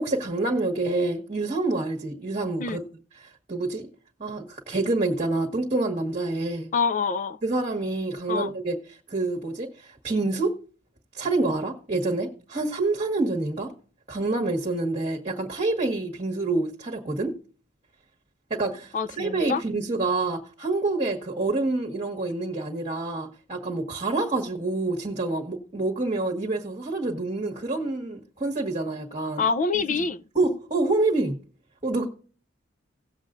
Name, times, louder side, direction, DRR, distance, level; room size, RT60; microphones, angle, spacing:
voice 1, 0.0-2.8 3.5-3.9 4.2-6.7 7.4-8.7 9.1-10.5 11.1-13.7 14.1-17.3 18.5-29.4 30.3-31.4 31.8-32.1, right 2 dB, 35° right, 1.4 m, -27 dB
voice 2, 6.7-7.4 8.3-8.5 18.9-19.6 29.4-30.2, left 5 dB, 40° left, 0.5 m, -26 dB
17.5 x 7.4 x 2.5 m
head